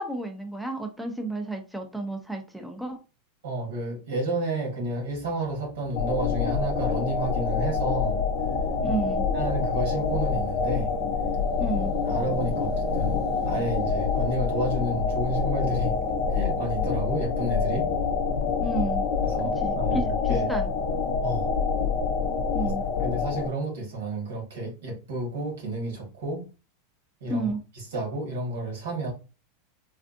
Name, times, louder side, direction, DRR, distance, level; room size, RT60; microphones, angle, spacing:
voice 1, 0.0-3.0 8.8-9.3 11.6-11.9 18.6-19.1 19.6-20.7 22.5-22.8 27.3-27.6, right 2 dB, 5° right, 0.4 m, -31 dB
voice 2, 3.4-8.2 9.3-10.9 12.0-13.2 13.4-16.0 16.3-17.9 19.2-20.5 21.2-21.5 22.6-22.7 23.0-26.4 27.2-27.5 27.7-29.1, right 2 dB, 85° right, 1.7 m, -31 dB
sound 1, 5.1-19.3, right 5 dB, 50° right, 0.9 m, -42 dB
sound 2, 5.9-23.5, left 5 dB, 60° left, 0.5 m, -26 dB
3.4 x 2.4 x 2.5 m
supercardioid pair, 130°, 0 cm